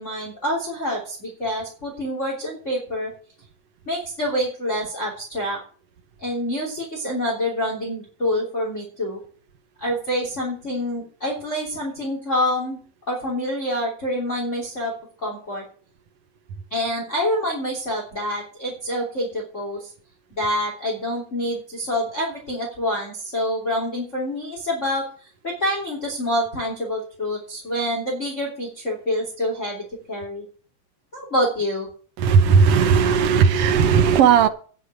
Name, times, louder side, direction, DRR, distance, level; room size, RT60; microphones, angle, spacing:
voice 1, 0.0-3.1 3.9-5.6 6.2-9.2 9.8-12.8 13.1-15.6 16.7-19.9 20.3-25.1 25.4-30.4 31.1-31.9, left 1 dB, 20° left, -2 dB, 3.2 m, -26 dB
voice 2, 32.2-34.5, right 6 dB, 70° right, 8 dB, 1.5 m, -16 dB
9.9 x 6.7 x 8.8 m, 0.43 s
omnidirectional pair, 3.9 m